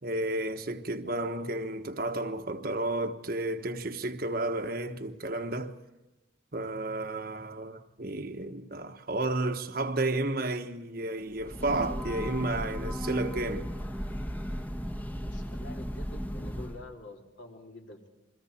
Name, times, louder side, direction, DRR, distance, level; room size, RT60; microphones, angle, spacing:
voice 1, 0.0-5.7 6.5-13.7, right 2 dB, 50° right, 1.3 m, -32 dB
Breathing / Train, 11.3-16.9, equal, 10° left, 1.1 m, -35 dB
voice 2, 15.2-18.1, left 1 dB, 65° left, 3.3 m, -47 dB
30.0 x 23.0 x 4.4 m
head